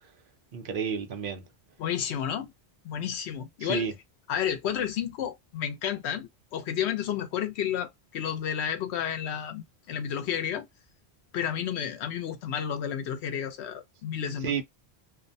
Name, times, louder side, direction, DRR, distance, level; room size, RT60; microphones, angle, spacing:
voice 1, 0.5-1.4 3.6-3.9 14.2-14.6, right 6 dB, 60° right, 0.7 m, -31 dB
voice 2, 1.8-2.5 2.8-3.9 4.3-10.7 11.3-14.6, left 9 dB, 85° left, 0.9 m, -31 dB
2.5 x 2.1 x 2.6 m
omnidirectional pair, 1.1 m